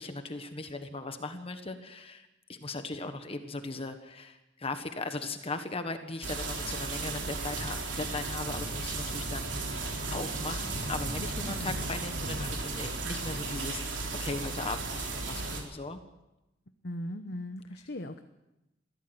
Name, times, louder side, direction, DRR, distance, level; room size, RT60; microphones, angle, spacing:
voice 1, 0.0-9.8 10.1-16.0 17.7-17.8, left 3 dB, 30° left, 8 dB, 1.4 m, -38 dB
sound 1, 6.2-15.6, right 3 dB, 70° right, 4.0 m, -35 dB
voice 2, 16.8-18.2, left 1 dB, 60° left, 7 dB, 1.1 m, -38 dB
22.5 x 16.0 x 7.9 m, 0.96 s
head